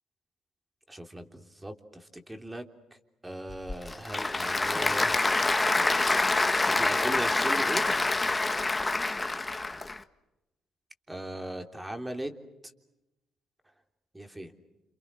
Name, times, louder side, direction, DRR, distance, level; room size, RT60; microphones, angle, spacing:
voice 1, 0.9-1.7 2.3-2.6 3.2-5.2 6.7-7.9 11.1-12.3 14.1-14.5, right 1 dB, 10° right, 6 dB, 3.4 m, -37 dB
Applause / Crowd, 3.5-10.0, left 2 dB, 20° left, 1.6 m, -26 dB
28.5 x 28.5 x 6.4 m, 0.96 s
cardioid pair, 90°, 0 cm